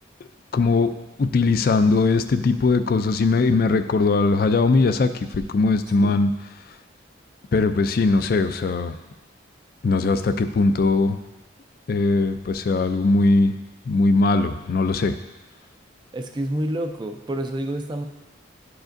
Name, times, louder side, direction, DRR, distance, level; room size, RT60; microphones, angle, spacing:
voice 1, 0.5-0.9 1.2-6.3 7.5-9.0 9.8-11.2 11.9-13.5 13.9-15.1, left 3 dB, 50° left, 10 dB, 0.3 m, -20 dB
voice 2, 5.9-6.2 16.1-18.0, right 1 dB, 25° right, 5 dB, 0.4 m, -28 dB
11.0 x 4.9 x 2.6 m, 1.1 s
head